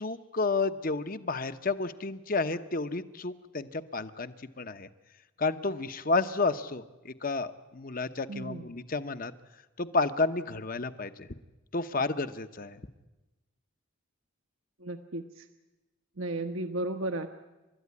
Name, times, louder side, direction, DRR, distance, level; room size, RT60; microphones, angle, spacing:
voice 1, 0.0-4.9 5.4-9.3 9.8-11.3 11.7-12.8, left 3 dB, 45° left, 11 dB, 1.0 m, -31 dB
voice 2, 8.3-8.7 14.8-15.5 16.2-17.3, right 2 dB, 80° right, 6 dB, 1.1 m, -34 dB
29.5 x 13.5 x 9.7 m, 1.1 s
head